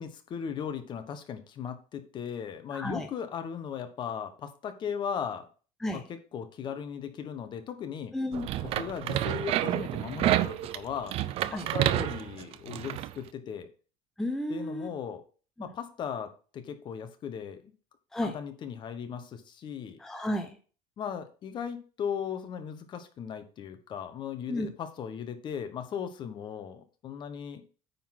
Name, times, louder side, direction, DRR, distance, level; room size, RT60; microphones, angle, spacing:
voice 1, 0.0-5.5 5.9-8.1 8.6-11.1 11.5-13.7 14.5-15.2 15.6-17.7 18.2-20.0 21.0-27.6, left 7 dB, 35° left, 9 dB, 1.1 m, -37 dB
voice 2, 2.7-3.1 5.8-6.0 8.1-8.5 11.5-11.6 14.2-14.9 15.6-15.7 18.1-18.3 20.0-20.5 24.5-24.7, left 1 dB, 5° left, 4 dB, 0.7 m, -32 dB
sound 1, 8.3-13.1, right 13 dB, 45° right, 0.5 m, -29 dB
9.3 x 3.9 x 5.9 m, 0.37 s
cardioid pair, 155°, 14 cm